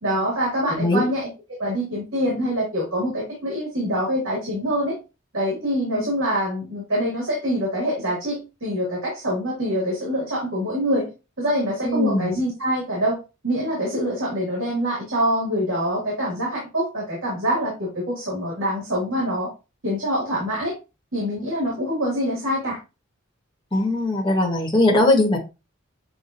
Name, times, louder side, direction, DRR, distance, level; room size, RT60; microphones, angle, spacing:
voice 1, 0.0-5.0 5.3-11.1 11.4-13.2 13.4-19.5 19.8-20.7 21.1-22.8, equal, 65° right, -4 dB, 2.3 m, -25 dB
voice 2, 0.7-1.0 11.8-12.3 23.7-25.4, left 2 dB, 25° left, -1 dB, 1.4 m, -20 dB
7.5 x 2.6 x 2.7 m, 0.28 s
head